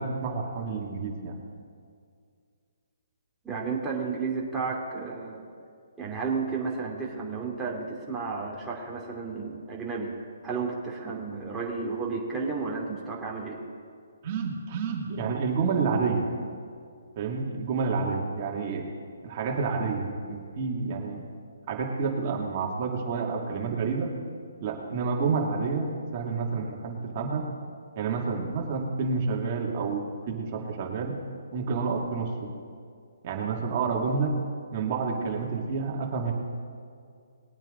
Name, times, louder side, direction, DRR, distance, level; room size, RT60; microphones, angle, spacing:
voice 1, 0.0-1.4 14.2-16.3 17.2-18.9 19.2-21.2 21.7-24.1 24.6-27.5 28.0-31.2 31.5-32.5 33.2-34.4 34.7-36.3, right 4 dB, 35° right, -1 dB, 2.5 m, -29 dB
voice 2, 3.4-5.4 6.0-13.6, right 4 dB, 10° right, -4 dB, 2.7 m, -32 dB
21.0 x 8.9 x 3.9 m, 2.2 s
hypercardioid pair, 150°, 0 cm